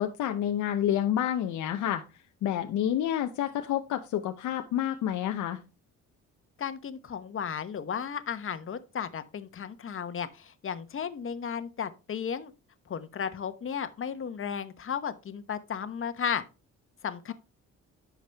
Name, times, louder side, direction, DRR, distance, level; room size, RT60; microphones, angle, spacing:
voice 1, 0.0-2.0 2.4-5.6, left 10 dB, 75° left, 0.8 m, -29 dB
voice 2, 6.6-12.5 12.9-16.4 17.0-17.3, left 7 dB, 45° left, 1.1 m, -34 dB
10.5 x 6.3 x 3.4 m
cardioid pair, 90°, 30 cm